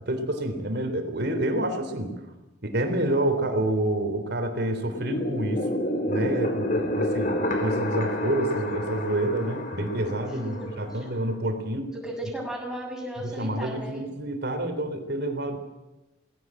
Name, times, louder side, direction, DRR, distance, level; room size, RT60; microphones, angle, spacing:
voice 1, 0.1-2.1 2.6-11.9 13.2-15.6, right 1 dB, 60° right, 8 dB, 3.5 m, -28 dB
sound 1, 4.8-11.4, left 1 dB, 45° left, 3.2 m, -29 dB
voice 2, 10.3-11.2 11.9-14.1, right 1 dB, 5° right, -1 dB, 7.2 m, -36 dB
19.0 x 17.5 x 9.0 m, 1.0 s
head